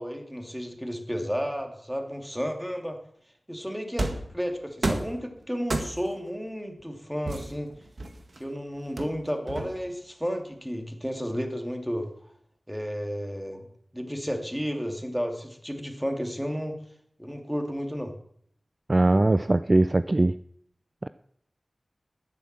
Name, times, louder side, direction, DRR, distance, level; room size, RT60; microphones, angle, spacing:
voice 1, 0.0-3.0 3.5-4.1 4.3-7.7 8.4-12.1 12.7-13.7 13.9-16.7 17.2-18.1, equal, ahead, 4 dB, 2.7 m, -32 dB
sound 1, 4.0-4.3 4.8-5.2 5.7-6.2 7.3-8.4 9.0-10.0, right 2 dB, 65° right, 1.9 m, -31 dB
voice 2, 18.9-20.3 21.0-21.1, right 2 dB, 35° right, 13 dB, 0.4 m, -21 dB
12.0 x 9.8 x 7.6 m, 0.69 s
wide cardioid pair, 55°, 0 cm